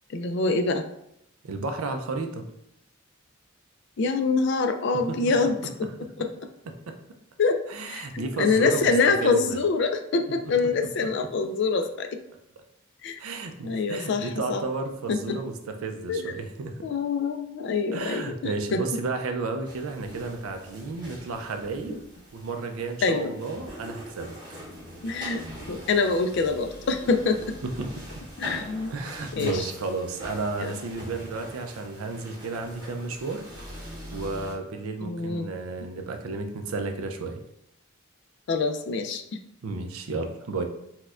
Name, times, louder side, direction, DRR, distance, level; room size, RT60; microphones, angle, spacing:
voice 1, 0.1-0.8 4.0-5.9 6.2-6.3 7.4-12.2 13.0-13.2 13.6-14.6 15.1-15.4 16.1-16.3 16.8-18.8 21.9-22.0 23.0-23.3 25.0-27.6 28.4-28.9 29.3-29.6 30.6-30.7 35.0-35.5 38.5-39.4, left 4 dB, 55° left, 7 dB, 0.3 m, -25 dB
voice 2, 1.4-2.4 5.1-5.2 6.9-7.0 7.7-8.9 9.2-9.6 13.2-16.9 17.9-22.0 22.3-24.4 27.8-27.9 28.9-33.4 34.1-37.4 39.6-40.6, right 3 dB, 80° right, 5 dB, 0.4 m, -32 dB
sound 1, 19.6-34.5, equal, 20° right, 0.8 m, -42 dB
4.2 x 2.2 x 2.4 m, 0.77 s
head